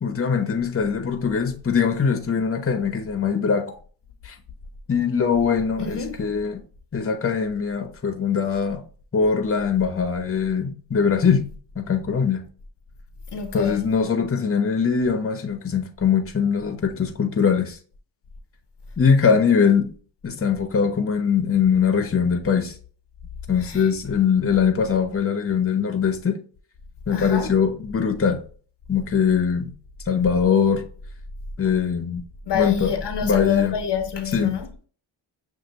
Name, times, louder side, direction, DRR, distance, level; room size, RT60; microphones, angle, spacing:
voice 1, 0.0-3.7 4.2-4.4 4.9-6.6 6.9-8.8 9.1-11.4 11.8-12.4 13.5-17.8 19.0-19.9 20.2-22.7 23.5-26.4 27.1-28.4 28.9-29.7 30.1-30.8 31.6-32.2 32.5-32.9 33.2-33.7 34.3-34.6, left 6 dB, 30° left, 0.8 m, -22 dB
voice 2, 5.8-6.2 13.3-13.8 23.7-23.8 27.1-27.5 32.5-34.9, left 7 dB, 60° left, 0.7 m, -27 dB
6.4 x 2.6 x 2.9 m
cardioid pair, 85°, 48 cm